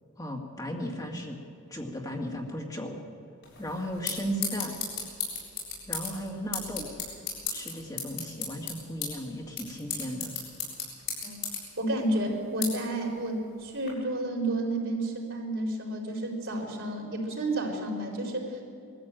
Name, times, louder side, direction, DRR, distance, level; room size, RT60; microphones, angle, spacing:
voice 1, 0.2-1.4 1.7-3.0 3.6-4.7 5.9-6.9 7.5-10.3, equal, 15° left, 1 dB, 2.0 m, -35 dB
sound 1, 3.4-13.9, left 5 dB, 55° left, 7.0 m, -37 dB
voice 2, 11.8-18.6, right 1 dB, 60° right, -1 dB, 4.5 m, -31 dB
21.0 x 14.0 x 9.0 m, 2.5 s
head